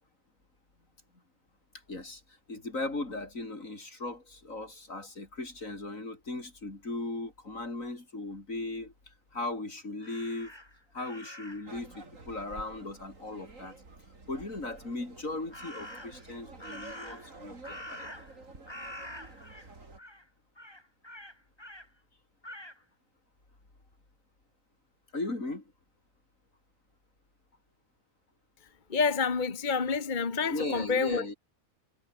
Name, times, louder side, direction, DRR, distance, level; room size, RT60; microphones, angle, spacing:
voice 1, 1.9-2.2 2.5-8.9 9.3-10.5 10.9-13.8 14.3-18.1 25.1-25.6 30.5-31.3, left 2 dB, 75° left, 5.4 m, -37 dB
Crow, 10.0-11.8 15.5-16.3 16.6-18.4 18.7-19.7 20.0-20.2 20.6-21.9 22.4-22.8, left 1 dB, 20° left, 4.6 m, -46 dB
sound 1, 11.7-20.0, right 3 dB, 70° right, 4.2 m, -50 dB
voice 2, 28.9-31.3, left 5 dB, 35° left, 1.5 m, -28 dB
omnidirectional pair, 1.4 m